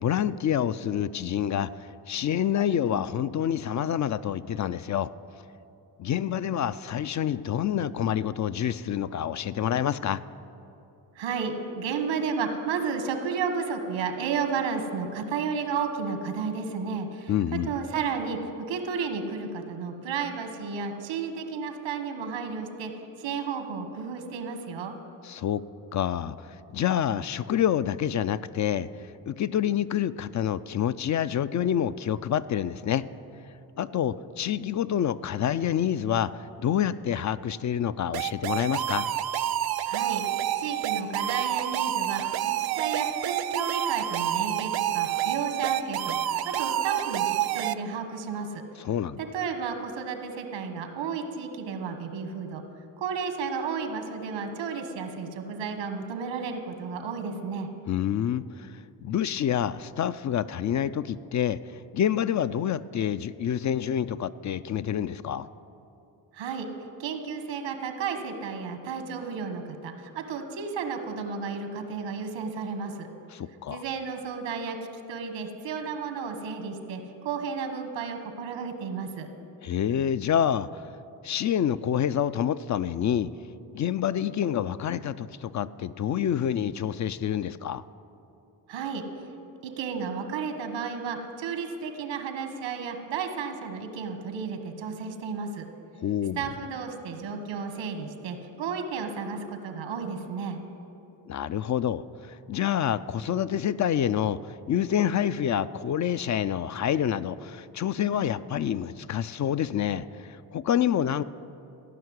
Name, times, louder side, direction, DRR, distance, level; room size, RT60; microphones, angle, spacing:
voice 1, 0.0-1.7 2.1-5.1 6.0-10.2 17.3-17.7 25.2-25.6 25.9-28.9 29.3-33.0 33.8-36.3 36.6-39.1 48.8-49.2 57.9-58.7 59.0-61.6 61.9-65.5 73.3-73.8 79.6-80.7 81.2-83.3 83.7-87.8 96.0-96.5 101.3-111.2, left 9 dB, 40° left, 0.4 m, -27 dB
voice 2, 11.1-22.9 23.2-24.9 39.9-40.2 40.6-48.6 49.2-52.6 53.0-57.7 66.3-66.7 67.0-73.1 73.7-74.8 75.1-79.3 88.7-89.0 89.6-95.7 96.4-100.6, right 5 dB, 90° right, 1.4 m, -32 dB
sound 1, 38.1-47.7, right 11 dB, 55° right, 0.6 m, -28 dB
16.0 x 5.8 x 9.5 m
cardioid pair, 75°, 44 cm